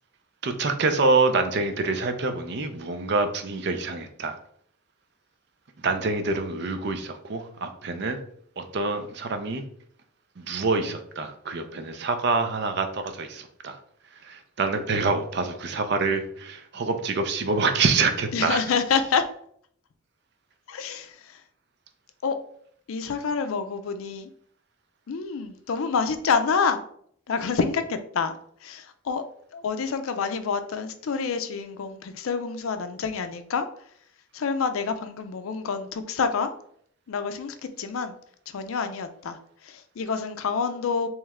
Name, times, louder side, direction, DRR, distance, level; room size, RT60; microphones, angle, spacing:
voice 1, 0.4-4.4 5.8-8.2 8.6-9.6 10.4-13.8 14.3-18.6, right 3 dB, 50° right, 7 dB, 0.5 m, -26 dB
voice 2, 18.3-19.3 20.7-21.1 22.2-22.4 22.9-24.3 25.1-26.8 27.3-28.3 28.6-29.2 29.5-33.7 34.3-36.5 37.1-38.1 38.5-39.4 39.7-41.1, left 5 dB, 80° left, 10 dB, 0.4 m, -27 dB
3.2 x 3.0 x 3.5 m, 0.64 s
head